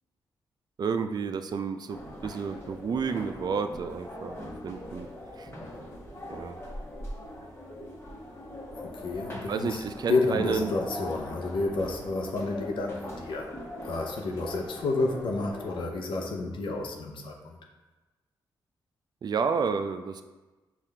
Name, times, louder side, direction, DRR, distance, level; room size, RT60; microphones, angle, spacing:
voice 1, 0.8-5.1 5.4-5.5 6.3-6.6 9.5-10.7 19.2-20.2, right 5 dB, 50° right, 9 dB, 0.3 m, -31 dB
sound 1, 1.9-15.8, left 1 dB, 30° left, 1.1 m, -41 dB
voice 2, 8.8-13.5 13.8-17.6, left 3 dB, 75° left, 1 dB, 0.6 m, -30 dB
5.5 x 2.4 x 3.3 m, 1.2 s
cardioid pair, 60°, 9 cm